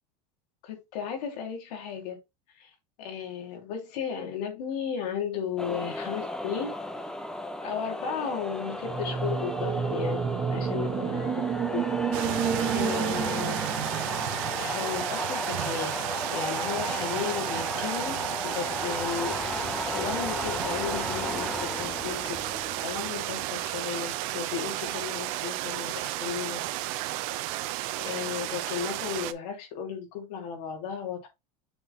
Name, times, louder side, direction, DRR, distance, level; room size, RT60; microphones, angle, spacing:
voice 1, 0.6-2.2 2.5-2.7 3.0-6.7 7.6-10.2 10.5-11.3 11.7-11.8 12.7-13.6 14.6-15.9 16.3-19.6 19.9-22.4 22.8-26.6 28.0-31.3, left 7 dB, 75° left, 2.6 m, -34 dB
sound 1, 5.6-24.1, left 1 dB, 5° left, 0.6 m, -35 dB
sound 2, 8.8-15.0, right 6 dB, 25° right, 1.2 m, -30 dB
sound 3, 12.1-29.3, right 16 dB, 55° right, 0.7 m, -33 dB
6.9 x 3.8 x 3.8 m
supercardioid pair, 170°, 21 cm